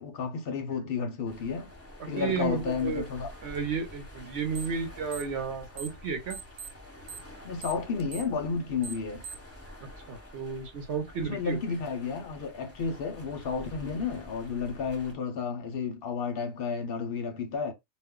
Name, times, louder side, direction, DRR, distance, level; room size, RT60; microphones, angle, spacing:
voice 1, 0.0-1.7 2.1-3.3 7.4-9.2 11.2-17.7, left 5 dB, 55° left, 0.7 m, -32 dB
sound 1, 1.3-15.1, left 1 dB, 15° left, 0.6 m, -48 dB
voice 2, 2.2-3.0 3.4-6.4 9.8-11.6, right 5 dB, 55° right, 0.8 m, -33 dB
sound 2, 4.5-4.8 5.1-6.0 6.3-9.5, right 6 dB, 80° right, 1.1 m, -42 dB
2.5 x 2.1 x 3.6 m
omnidirectional pair, 1.5 m